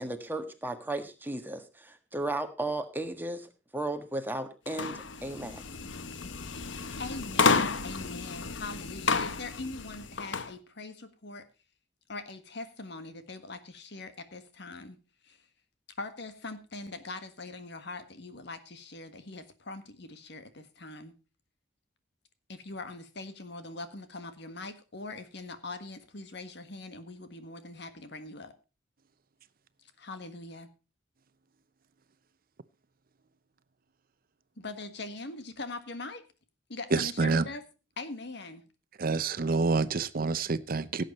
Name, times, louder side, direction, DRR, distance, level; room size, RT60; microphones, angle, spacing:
voice 1, 0.0-5.6, right 2 dB, 10° right, 1.5 m, -35 dB
sound 1, 4.7-10.5, left 4 dB, 85° left, 1.0 m, -31 dB
voice 2, 7.0-11.5 12.1-15.0 15.2-15.4 16.0-21.1 22.5-28.5 29.8-30.7 34.6-36.3 36.7-37.6 38.0-38.6, left 3 dB, 65° left, 1.6 m, -42 dB
voice 3, 36.9-37.5 39.0-41.0, right 4 dB, 50° right, 0.7 m, -27 dB
17.0 x 8.3 x 4.2 m
head